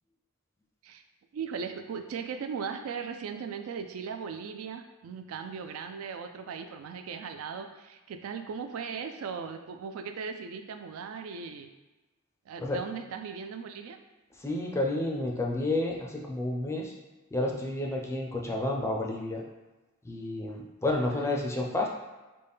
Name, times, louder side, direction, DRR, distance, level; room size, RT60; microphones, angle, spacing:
voice 1, 1.3-11.7 12.5-14.0 21.1-21.3, right 6 dB, 70° right, 6 dB, 0.3 m, -38 dB
voice 2, 14.4-16.9 17.3-19.4 20.1-21.9, left 2 dB, 15° left, 0 dB, 0.4 m, -30 dB
4.0 x 2.2 x 3.5 m, 1.1 s
head